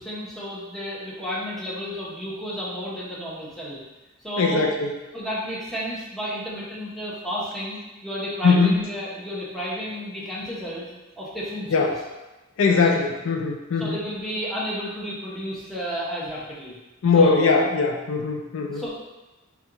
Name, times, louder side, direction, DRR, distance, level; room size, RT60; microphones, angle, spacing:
voice 1, 0.0-3.8 4.2-4.7 5.1-10.9 11.2-11.9 13.8-16.8 17.1-17.6 18.7-19.0, equal, ahead, -7 dB, 0.8 m, -32 dB
voice 2, 4.4-4.9 8.4-8.8 11.7-12.0 12.6-14.0 17.0-18.8, left 4 dB, 65° left, 2 dB, 0.4 m, -20 dB
4.4 x 2.2 x 3.7 m, 1.1 s
head